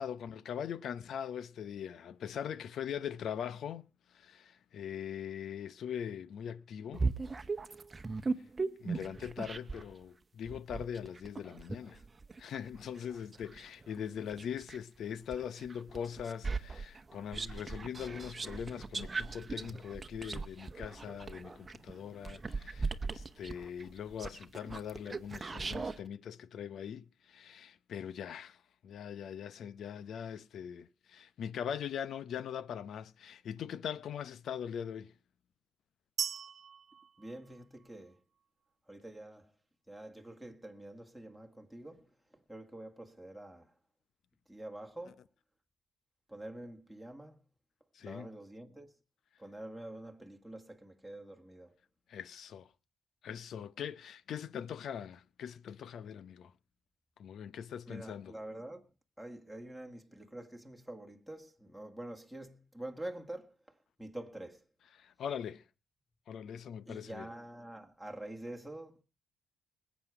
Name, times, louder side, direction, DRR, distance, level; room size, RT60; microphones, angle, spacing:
voice 1, 0.0-3.8 4.1-7.1 8.8-12.0 12.4-35.1 45.1-45.2 47.9-48.3 52.1-52.7 53.2-56.5 57.2-58.4 64.9-65.6 66.3-67.3, left 8 dB, 65° left, 0.7 m, -41 dB
sound 1, 6.9-9.9 10.5-14.8 15.3-26.0, right 4 dB, 25° right, 1.0 m, -38 dB
sound 2, 36.2-38.1, right 8 dB, 50° right, 0.7 m, -40 dB
voice 2, 37.2-38.2 38.9-39.5 39.9-42.1 42.5-43.7 44.5-45.2 46.3-47.4 48.0-49.0 49.4-51.7 57.9-58.8 59.2-63.6 64.0-64.6 66.9-69.0, right 1 dB, ahead, 1.9 m, -46 dB
21.0 x 8.4 x 4.8 m
cardioid pair, 90°, 0 cm